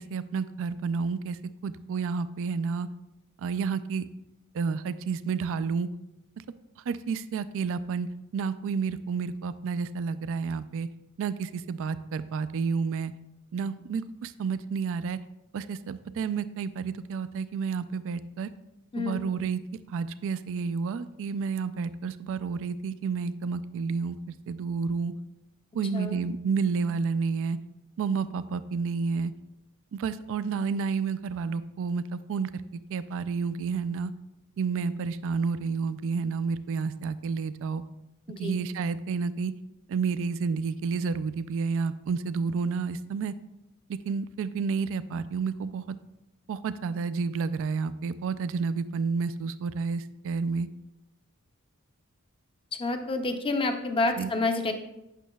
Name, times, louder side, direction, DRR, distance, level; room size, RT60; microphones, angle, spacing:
voice 1, 0.0-2.9 3.4-4.0 4.5-5.9 6.9-8.1 8.3-10.9 11.2-13.1 13.5-15.2 15.5-18.5 19.0-19.6 19.9-25.1 25.7-27.6 28.0-29.3 29.9-32.5 32.9-34.1 34.6-37.8 38.4-39.5 39.9-43.3 44.1-46.0 46.5-50.7 54.2-54.3, right 5 dB, 65° right, 13 dB, 0.3 m, -30 dB
voice 2, 18.9-19.2 25.9-26.2 38.3-38.6 52.8-54.7, left 2 dB, 25° left, 6 dB, 0.5 m, -28 dB
8.2 x 6.1 x 2.3 m, 0.90 s
head